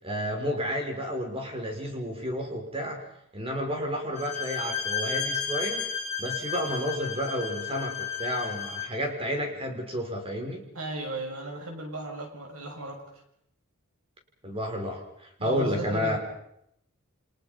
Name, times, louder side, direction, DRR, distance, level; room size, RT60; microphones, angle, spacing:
voice 1, 0.0-3.0 3.3-5.9 6.2-10.7 14.4-16.2, equal, 25° right, 3 dB, 6.0 m, -31 dB
Bowed string instrument, 4.1-9.0, left 6 dB, 30° left, 7.4 m, -33 dB
voice 2, 10.7-13.0 15.4-16.2, right 2 dB, 75° right, 2 dB, 6.8 m, -35 dB
30.0 x 26.0 x 5.4 m, 0.75 s
head